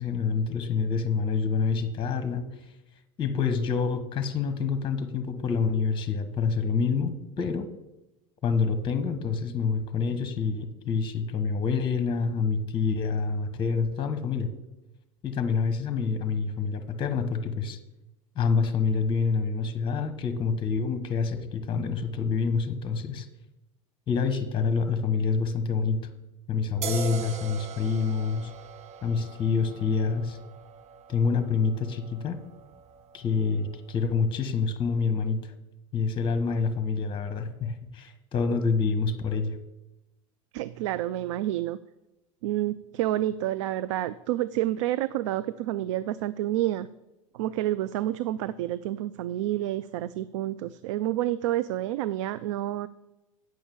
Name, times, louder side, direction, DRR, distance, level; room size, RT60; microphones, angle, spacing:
voice 1, 0.0-2.7 3.2-7.7 8.4-14.5 15.2-17.8 18.4-23.3 24.1-26.0 26.5-28.5 29.0-30.4 31.1-32.4 33.1-35.5 35.9-39.5, left 5 dB, 30° left, 10 dB, 1.0 m, -27 dB
sound 1, 26.8-34.1, right 8 dB, 40° right, 0.7 m, -42 dB
voice 2, 40.5-41.8 42.4-46.9 47.3-52.9, right 14 dB, 65° right, 16 dB, 0.4 m, -29 dB
8.6 x 6.5 x 7.1 m, 0.98 s
hypercardioid pair, 85°, 17 cm